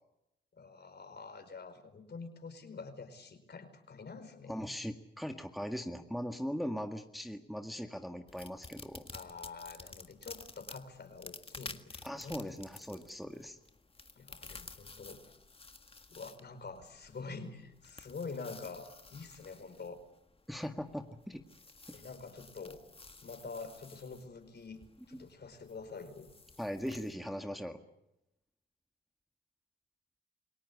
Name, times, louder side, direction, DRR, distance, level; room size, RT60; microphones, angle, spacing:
voice 1, 0.5-4.7 9.1-12.5 14.2-15.3 16.1-20.0 21.9-22.8 23.2-24.8 25.1-26.3, left 4 dB, 55° left, 8 dB, 4.7 m, -46 dB
voice 2, 4.5-9.0 12.0-13.6 20.5-21.4 21.9-22.0 25.1-25.3 26.6-27.8, equal, ahead, 5 dB, 1.9 m, -40 dB
sound 1, 8.3-27.1, left 3 dB, 25° left, 1.7 m, -53 dB
28.0 x 18.0 x 8.5 m, 0.86 s
cardioid pair, 60°, 21 cm